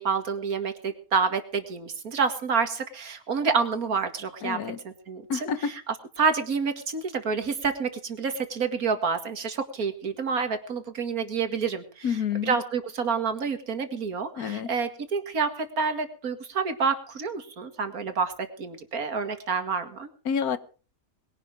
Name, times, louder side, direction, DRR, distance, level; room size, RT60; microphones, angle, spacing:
voice 1, 0.0-20.1, right 5 dB, 70° right, 8 dB, 2.4 m, -28 dB
voice 2, 4.4-4.8 5.3-5.7 12.0-12.6 14.4-14.7 20.2-20.6, left 7 dB, 80° left, 14 dB, 1.7 m, -28 dB
21.0 x 11.5 x 4.7 m, 0.39 s
omnidirectional pair, 1.6 m